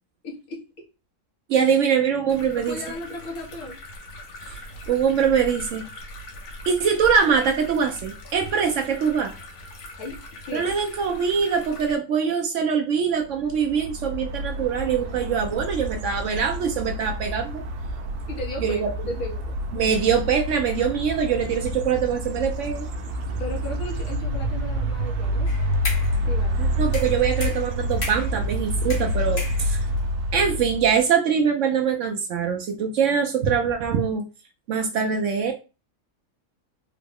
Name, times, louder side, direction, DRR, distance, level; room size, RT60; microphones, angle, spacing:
voice 1, 0.2-0.6 1.5-1.7 2.6-3.8 10.0-10.2 10.5-10.7 18.3-19.5 23.4-25.5 26.3-26.6, left 1 dB, 75° left, -2 dB, 1.5 m, -35 dB
voice 2, 1.5-2.8 4.5-4.6 4.9-5.9 6.6-9.3 10.5-17.6 18.6-19.1 19.7-22.9 26.6-29.8 30.3-34.3 34.7-35.5, right 7 dB, 65° right, 4 dB, 0.8 m, -23 dB
sound 1, 2.3-12.0, left 1 dB, 90° left, 1.3 m, -40 dB
sound 2, 13.4-31.0, equal, 90° right, 1.1 m, -28 dB
sound 3, 25.5-26.2 26.9-28.4 28.9-30.0, left 2 dB, 55° left, 1.3 m, -34 dB
3.8 x 2.0 x 3.5 m, 0.31 s
omnidirectional pair, 1.6 m